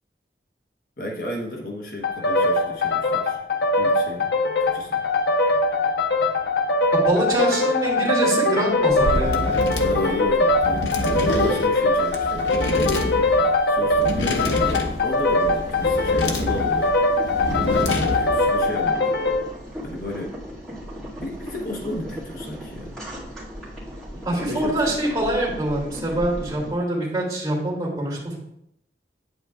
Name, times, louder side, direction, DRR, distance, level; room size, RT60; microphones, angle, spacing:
voice 1, 1.0-3.4 3.8-4.3 4.6-5.0 9.8-13.2 13.7-16.9 18.2-19.1 19.8-20.3 21.2-22.9 24.1-24.9, left 1 dB, 50° left, 0 dB, 1.1 m, -32 dB
sound 1, 2.0-19.5, left 2 dB, 70° left, 0.8 m, -22 dB
voice 2, 6.9-9.6 9.9-10.2 24.2-28.4, right 1 dB, 20° right, -6 dB, 2.9 m, -25 dB
sound 2, 8.9-18.5, left 1 dB, 85° left, 1.1 m, -28 dB
Boiling, 14.0-26.7, equal, 5° left, 2.4 m, -37 dB
9.1 x 8.1 x 2.4 m, 0.75 s
head